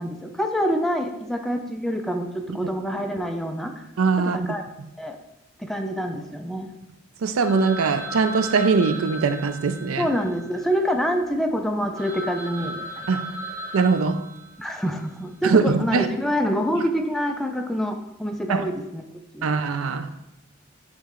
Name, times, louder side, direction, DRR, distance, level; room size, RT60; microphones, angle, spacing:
voice 1, 0.0-3.8 4.3-4.6 5.0-5.2 5.6-6.7 10.0-12.8 14.6-19.0 19.3-19.5, equal, ahead, 0.4 m, -26 dB
voice 2, 4.0-4.5 7.2-10.1 13.1-13.3 13.7-14.3 15.4-16.1 18.5-18.7 19.4-20.1, right 4 dB, 75° right, 0.4 m, -21 dB
Telephone, 7.4-11.2 11.7-11.8 12.0-14.8, right 1 dB, 15° right, 2.1 m, -36 dB
8.6 x 3.1 x 3.7 m
head